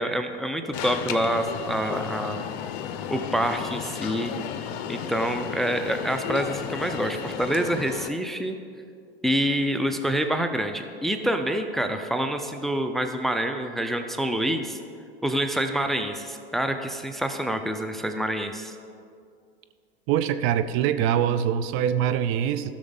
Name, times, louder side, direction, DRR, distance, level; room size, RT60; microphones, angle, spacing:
voice 1, 0.0-2.5 3.1-4.3 4.9-8.6 9.2-14.8 15.2-18.8, right 1 dB, ahead, 6 dB, 0.5 m, -27 dB
Alarm, 0.7-8.1, left 9 dB, 50° left, 0.7 m, -33 dB
voice 2, 20.1-22.7, right 9 dB, 45° right, 11 dB, 0.6 m, -24 dB
15.5 x 6.3 x 4.0 m, 2.3 s
hypercardioid pair, 90°, 31 cm